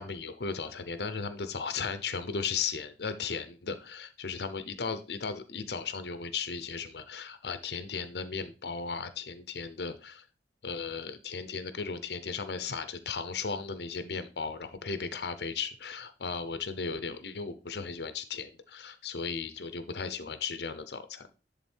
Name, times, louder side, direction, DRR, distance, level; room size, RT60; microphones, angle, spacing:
voice 1, 0.0-10.2 10.6-21.3, left 5 dB, 70° left, 11 dB, 0.7 m, -36 dB
11.0 x 3.8 x 4.4 m, 0.33 s
head